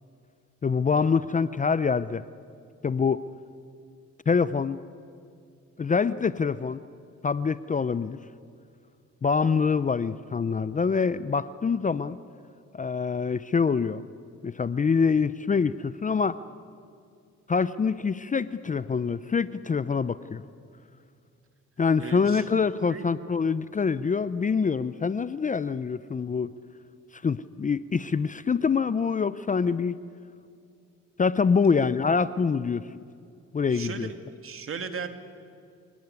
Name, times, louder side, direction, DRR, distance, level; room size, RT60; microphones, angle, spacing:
voice 1, 0.6-2.2 2.8-3.2 4.3-4.8 5.8-6.8 7.2-8.2 9.2-12.2 12.7-14.0 14.4-16.4 17.5-20.4 21.8-26.5 27.1-30.0 31.2-32.9 33.5-34.1, left 5 dB, 25° left, 15 dB, 0.6 m, -25 dB
voice 2, 22.0-22.4 22.9-23.1 31.7-31.8 33.7-34.1 34.4-35.1, right 5 dB, 45° right, 7 dB, 2.4 m, -37 dB
27.0 x 17.5 x 9.6 m, 2.3 s
cardioid pair, 90°, 30 cm